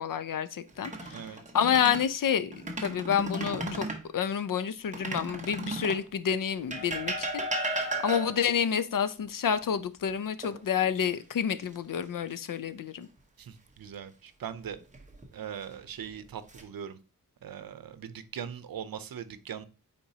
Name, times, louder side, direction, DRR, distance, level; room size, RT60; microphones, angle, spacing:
voice 1, 0.0-2.5 2.8-3.9 4.1-13.1, left 8 dB, 70° left, 0.6 m, -29 dB
sound 1, 0.7-2.1 2.5-4.0 4.9-6.1 6.7-8.5 10.4-11.1 11.5-11.7 14.6-15.2 16.0-16.6, right 1 dB, 20° right, 1.1 m, -35 dB
voice 2, 1.1-1.4 13.4-14.8 15.3-17.0 17.4-19.6, right 8 dB, 85° right, 0.7 m, -40 dB
8.7 x 4.4 x 2.8 m
wide cardioid pair, 145°, 34 cm